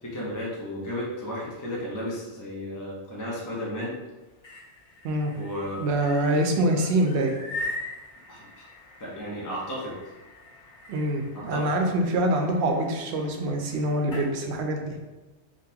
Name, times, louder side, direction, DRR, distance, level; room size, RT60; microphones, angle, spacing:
voice 1, 0.0-4.0 5.4-5.8 8.3-8.7 9.0-10.0 11.3-11.8, equal, 20° left, -5 dB, 0.7 m, -34 dB
sound 1, 4.2-14.3, left 2 dB, 50° left, 0.9 m, -42 dB
voice 2, 5.8-7.4 10.9-15.0, right 1 dB, 70° right, 3 dB, 0.9 m, -25 dB
3.8 x 2.6 x 2.8 m, 1.1 s
omnidirectional pair, 1.2 m